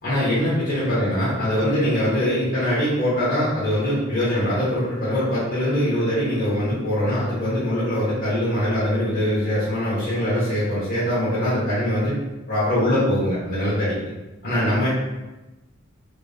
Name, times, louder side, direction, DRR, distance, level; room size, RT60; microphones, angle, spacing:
voice 1, 0.0-12.1 12.5-13.9 14.4-14.9, equal, 45° left, -10 dB, 1.1 m, -22 dB
3.4 x 2.9 x 2.7 m, 1.1 s
head